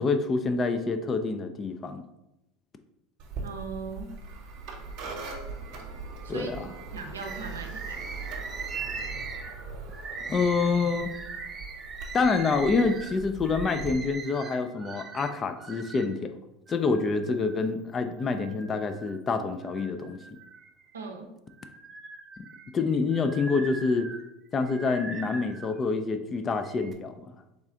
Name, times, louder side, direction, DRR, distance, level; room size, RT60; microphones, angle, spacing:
voice 1, 0.0-2.0 6.3-6.7 10.3-11.1 12.1-16.3 16.7-20.2 22.7-24.1 24.5-27.1, left 4 dB, 30° left, 8 dB, 0.4 m, -27 dB
sound 1, 3.2-13.9, right 4 dB, 55° right, 0.9 m, -41 dB
voice 2, 3.4-4.2 6.2-8.0 20.9-21.3, right 4 dB, 85° right, 3 dB, 0.5 m, -39 dB
Bird, 7.2-16.1 16.7-17.7 18.2-19.2 19.6-21.0 21.5-25.8 26.5-26.9, right 4 dB, 30° right, 0.5 m, -41 dB
3.6 x 3.2 x 3.7 m, 0.90 s
hypercardioid pair, 80°, 0 cm